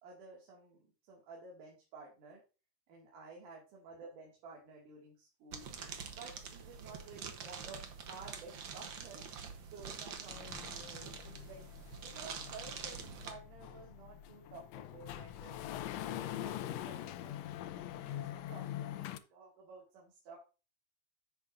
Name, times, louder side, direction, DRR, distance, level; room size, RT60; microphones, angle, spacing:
voice 1, 0.0-2.4 2.9-5.7 6.1-9.3 9.7-11.7 12.0-15.6 15.9-17.4 17.7-20.4, right 4 dB, 90° right, -3 dB, 3.6 m, -53 dB
sound 1, 5.5-13.3, right 6 dB, 65° right, 1.2 m, -46 dB
sound 2, 10.3-19.2, left 12 dB, 80° left, 1.5 m, -44 dB
10.0 x 8.1 x 2.6 m, 0.32 s
omnidirectional pair, 3.6 m